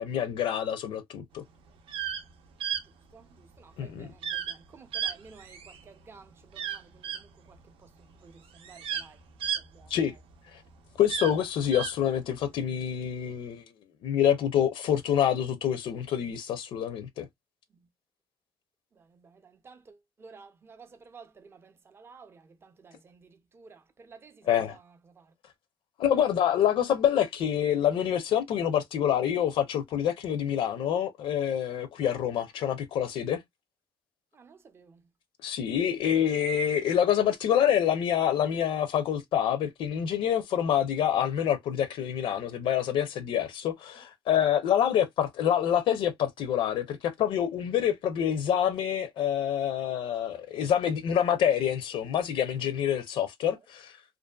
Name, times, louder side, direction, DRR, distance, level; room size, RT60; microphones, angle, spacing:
voice 1, 0.0-1.4 3.8-4.1 9.9-10.1 11.0-13.6 14.0-17.3 24.5-24.8 26.0-33.4 35.4-53.9, left 9 dB, 70° left, 0.5 m, -27 dB
sound 1, 1.8-2.2 2.6-2.8 4.2-4.6 4.9-5.8 6.5-7.2 8.1-8.2 8.5-10.3 11.0-11.9, right 8 dB, 85° right, 0.6 m, -33 dB
voice 2, 3.6-7.1 8.2-8.3 8.6-9.2 9.7-9.9 19.4-19.9 20.2-23.3 23.5-24.4 34.4-35.0, right 5 dB, 25° right, 0.5 m, -52 dB
2.6 x 2.4 x 2.2 m
cardioid pair, 155°, 9 cm